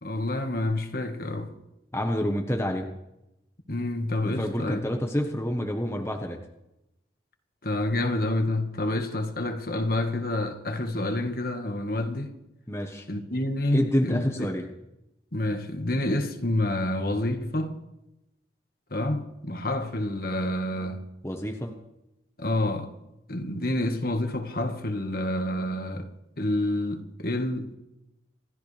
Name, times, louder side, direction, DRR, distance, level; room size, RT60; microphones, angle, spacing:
voice 1, 0.0-1.5 3.7-4.8 7.6-12.3 13.1-14.5 15.3-17.8 18.9-21.0 22.4-22.9 23.3-26.1 26.4-27.8, left 1 dB, 50° left, 1.7 m, -28 dB
voice 2, 1.9-2.9 4.2-6.4 12.7-13.1 13.7-14.7 21.2-21.8, equal, 15° left, 1.2 m, -28 dB
27.0 x 13.5 x 3.4 m
head